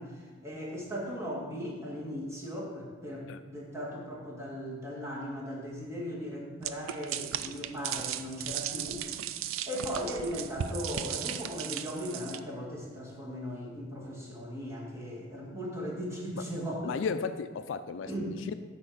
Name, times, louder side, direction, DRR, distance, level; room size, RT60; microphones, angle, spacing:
voice 1, 0.0-9.3 9.7-17.1 18.1-18.4, equal, 15° right, -4 dB, 1.8 m, -38 dB
sound 1, 6.6-12.4, right 10 dB, 90° right, 0.4 m, -36 dB
voice 2, 16.8-18.5, left 5 dB, 65° left, 11 dB, 0.3 m, -34 dB
8.4 x 4.3 x 6.6 m, 1.5 s
head